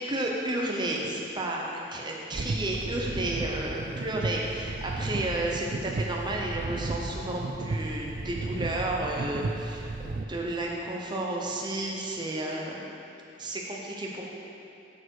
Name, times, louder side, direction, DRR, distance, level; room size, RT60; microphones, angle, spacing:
voice 1, 0.0-9.9 10.3-12.9 13.4-14.2, right 1 dB, 25° right, -2 dB, 0.9 m, -32 dB
sound 1, 2.3-10.2, right 2 dB, 45° right, 0.4 m, -34 dB
8.5 x 6.7 x 4.7 m, 2.8 s
head